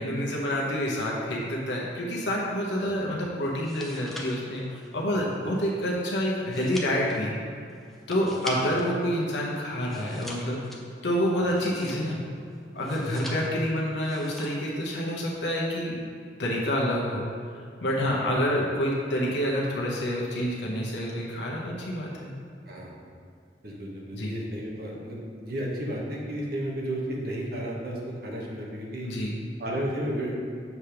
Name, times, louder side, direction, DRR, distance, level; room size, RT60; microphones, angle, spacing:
voice 1, 0.0-4.6 4.9-7.4 8.1-10.6 11.0-12.2 12.7-16.0 16.4-17.3 17.8-22.3 24.1-24.3 29.0-29.3, equal, 80° left, -3 dB, 0.9 m, -28 dB
sound 1, 3.5-9.0 9.3-12.3 12.8-13.7 14.0-14.7 15.0-15.4, equal, ahead, 0.5 m, -43 dB
voice 2, 23.6-29.1 29.6-30.4, right 1 dB, 55° right, -3 dB, 1.2 m, -33 dB
7.1 x 3.4 x 5.7 m, 2.3 s
head